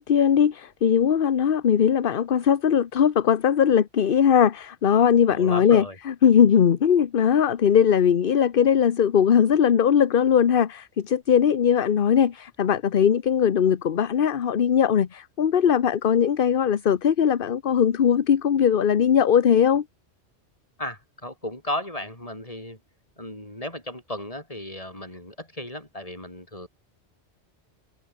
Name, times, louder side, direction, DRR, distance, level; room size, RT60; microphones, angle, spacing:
voice 1, 0.0-19.8, left 8 dB, 55° left, 1.0 m, -20 dB
voice 2, 5.3-6.0 20.8-22.8 23.2-26.7, left 1 dB, 30° left, 6.0 m, -35 dB
omnidirectional pair, 1.2 m